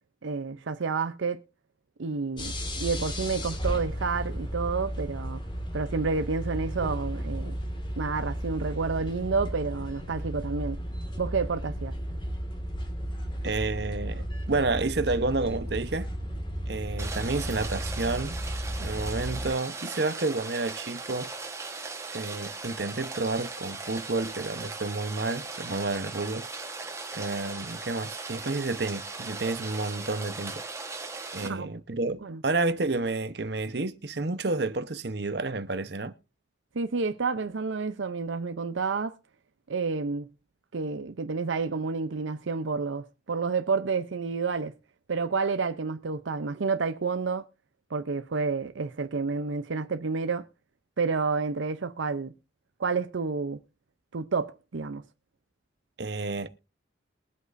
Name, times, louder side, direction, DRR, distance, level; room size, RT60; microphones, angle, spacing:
voice 1, 0.2-1.4 2.0-5.4 5.7-7.6 8.0-10.8 11.2-11.9 31.5-31.7 32.2-32.4 36.7-39.2 39.7-40.3 40.7-44.7 45.1-47.4 47.9-50.5 51.0-52.3 52.8-53.6 54.1-55.0, right 4 dB, 85° right, 0.6 m, -29 dB
sound 1, 2.4-19.5, equal, 25° left, 2.0 m, -34 dB
voice 2, 13.4-16.1 16.7-18.4 18.8-21.3 22.1-26.5 27.1-30.6 31.3-36.1 56.0-56.5, right 3 dB, 60° right, 0.9 m, -30 dB
Rain, 17.0-31.5, right 3 dB, 15° right, 1.2 m, -38 dB
22.0 x 8.1 x 2.6 m
head